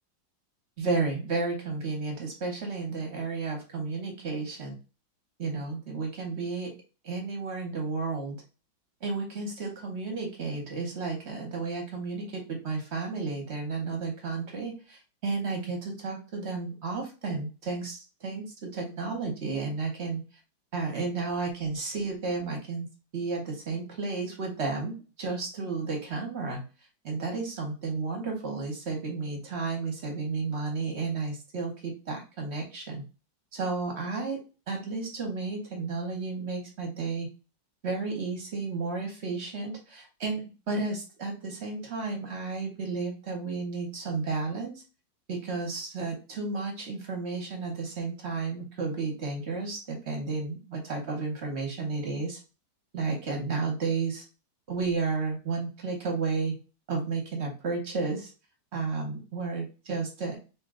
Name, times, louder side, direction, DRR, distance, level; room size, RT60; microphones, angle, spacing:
voice 1, 0.8-4.8 5.4-6.7 7.0-8.4 9.0-20.2 20.7-22.9 23.1-26.6 27.0-33.0 33.5-34.4 34.7-37.3 37.8-40.4 40.7-44.7 45.3-52.4 52.9-54.2 54.7-56.5 56.9-58.3 58.7-60.4, right 4 dB, 50° right, 1 dB, 0.9 m, -32 dB
2.9 x 2.9 x 3.6 m, 0.33 s
omnidirectional pair, 2.1 m